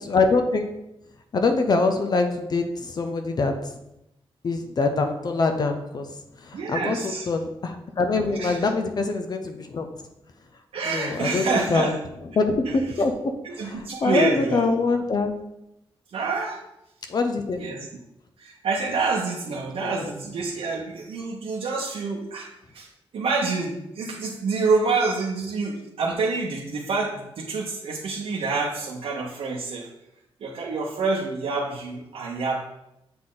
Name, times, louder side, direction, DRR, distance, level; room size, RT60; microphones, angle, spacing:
voice 1, 0.0-0.7 1.3-3.7 4.4-6.1 6.4-9.9 10.9-11.4 11.7-12.0 12.4-15.3 17.1-17.6 19.8-20.1, left 3 dB, 45° left, 6 dB, 0.6 m, -24 dB
voice 2, 6.5-7.3 8.4-8.7 10.7-11.9 12.7-13.0 13.4-14.7 16.1-16.6 17.6-17.9 18.4-22.5 22.7-22.9 23.1-29.9 30.4-32.6, right 4 dB, 85° right, -3 dB, 0.8 m, -27 dB
7.7 x 4.1 x 3.8 m, 0.86 s
wide cardioid pair, 160°, 10 cm